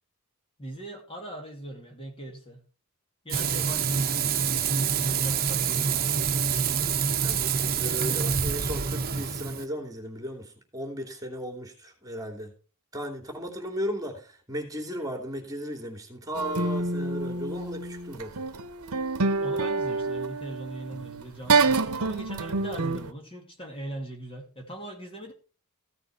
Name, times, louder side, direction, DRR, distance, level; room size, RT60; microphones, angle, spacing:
voice 1, 0.6-2.6 3.2-4.4 4.7-6.3 19.4-25.3, right 1 dB, 25° left, 2.5 m, -40 dB
Frying (food), 3.3-9.7, right 6 dB, 45° right, 1.0 m, -26 dB
voice 2, 7.2-12.5 12.9-18.4, equal, 15° right, 2.9 m, -36 dB
sound 1, 16.3-23.1, right 3 dB, 80° right, 0.9 m, -27 dB
15.5 x 6.8 x 4.4 m
head